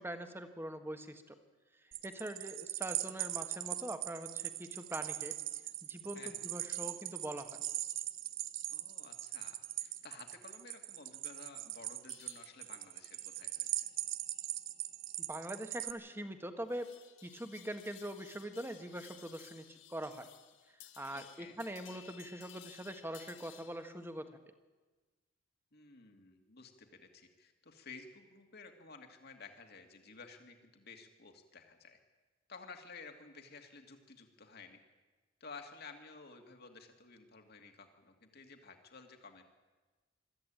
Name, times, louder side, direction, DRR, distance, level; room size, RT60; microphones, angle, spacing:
voice 1, 0.0-1.4 2.0-5.3 5.8-7.6 15.2-16.9 17.2-20.3 21.0-24.3, right 1 dB, 10° right, 8 dB, 1.4 m, -43 dB
sound 1, 1.9-15.9, right 14 dB, 75° right, 0.8 m, -40 dB
voice 2, 6.1-6.5 8.7-13.9 21.1-21.6 25.7-32.0 32.5-34.8 35.4-39.4, left 4 dB, 55° left, 4 dB, 2.4 m, -54 dB
sound 2, 12.1-23.9, left 10 dB, 70° left, 1.7 m, -59 dB
22.0 x 13.5 x 8.9 m, 1.3 s
head